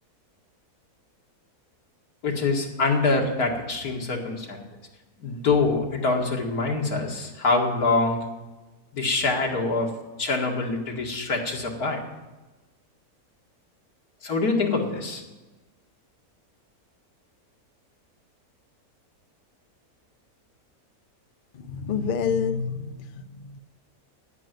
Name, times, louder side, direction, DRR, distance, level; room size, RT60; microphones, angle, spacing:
voice 1, 2.2-4.6 5.2-8.2 8.9-9.9 10.2-12.0 14.2-15.2, left 3 dB, 80° left, 0 dB, 2.6 m, -25 dB
voice 2, 21.5-23.6, left 6 dB, 50° left, 10 dB, 0.6 m, -28 dB
10.5 x 9.9 x 9.3 m, 1.1 s
omnidirectional pair, 1.6 m